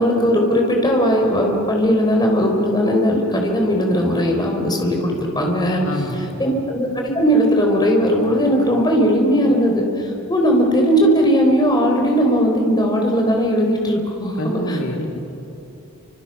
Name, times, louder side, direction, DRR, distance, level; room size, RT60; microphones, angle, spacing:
voice 1, 0.0-5.9 6.4-14.8, equal, 20° left, 1 dB, 4.0 m, -18 dB
voice 2, 5.8-6.4 14.4-15.2, equal, 65° left, 1 dB, 2.6 m, -26 dB
29.5 x 26.0 x 5.6 m, 2.9 s
head